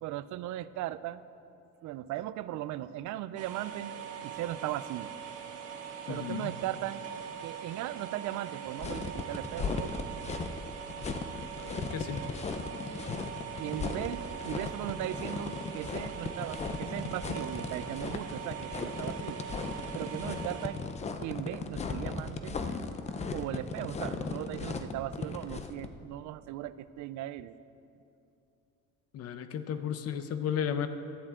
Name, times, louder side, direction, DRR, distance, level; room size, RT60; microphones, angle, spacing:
voice 1, 0.0-1.2 1.8-3.9 4.2-5.1 6.1-7.1 7.4-9.9 13.6-19.4 19.9-20.8 21.2-22.6 23.3-27.6, right 13 dB, 70° right, 15 dB, 0.5 m, -38 dB
sound 1, 3.4-20.7, right 8 dB, 55° right, 1.5 m, -42 dB
voice 2, 6.1-6.5 11.6-12.2 29.1-30.9, left 8 dB, 55° left, 10 dB, 0.8 m, -34 dB
sound 2, 8.8-25.9, left 4 dB, 20° left, 0.5 m, -37 dB
16.0 x 12.5 x 3.7 m, 2.7 s
cardioid pair, 160°, 30 cm